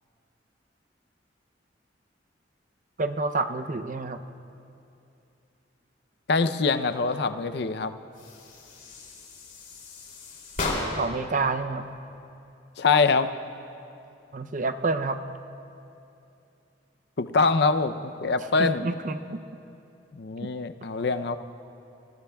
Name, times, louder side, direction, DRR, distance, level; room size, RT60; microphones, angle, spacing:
voice 1, 3.0-4.2 11.0-11.9 14.3-15.2 18.6-19.4 20.4-20.5, right 3 dB, 45° right, 8 dB, 0.6 m, -28 dB
voice 2, 6.3-7.9 12.8-13.3 17.2-18.8 20.1-21.4, left 4 dB, 60° left, 11 dB, 0.6 m, -24 dB
sound 1, 8.1-11.2, left 2 dB, 45° left, 3.0 m, -34 dB
29.0 x 19.5 x 2.3 m, 2.7 s
head